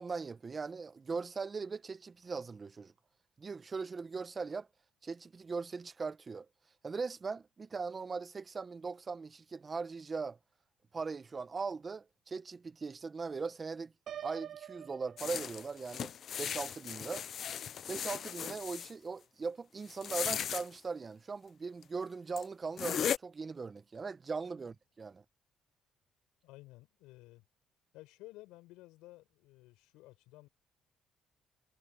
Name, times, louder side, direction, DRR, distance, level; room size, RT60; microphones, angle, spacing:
voice 1, 0.0-2.9 3.4-4.7 5.0-6.5 6.8-10.4 10.9-13.9 14.2-16.1 16.4-17.3 17.9-25.2, right 4 dB, 35° right, 1.3 m, -40 dB
Piano, 14.1-16.0, right 10 dB, 65° right, 1.2 m, -46 dB
sound 1, 15.2-18.9 19.9-20.6 21.8-21.9 22.4-22.5 22.8-23.2, left 9 dB, 60° left, 0.8 m, -37 dB
voice 2, 26.4-27.4 27.9-30.5, left 19 dB, 85° left, 7.8 m, -54 dB
supercardioid pair, 65°, 0 cm